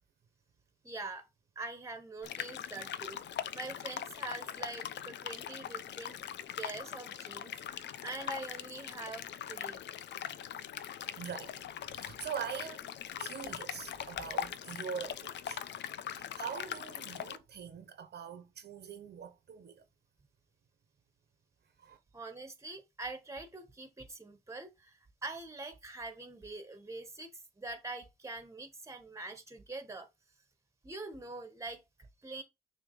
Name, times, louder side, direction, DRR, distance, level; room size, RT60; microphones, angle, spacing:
voice 1, 0.8-1.3 1.5-3.2 3.5-9.8 22.1-30.1 30.8-31.8 32.2-32.4, right 2 dB, 15° right, 1.6 m, -44 dB
sound 1, 2.2-17.4, left 10 dB, 65° left, 0.7 m, -41 dB
voice 2, 11.2-11.7 11.9-12.9 13.2-15.6 16.1-19.8 21.8-22.0, right 7 dB, 55° right, 1.3 m, -43 dB
6.3 x 3.3 x 5.0 m
cardioid pair, 90°, 20 cm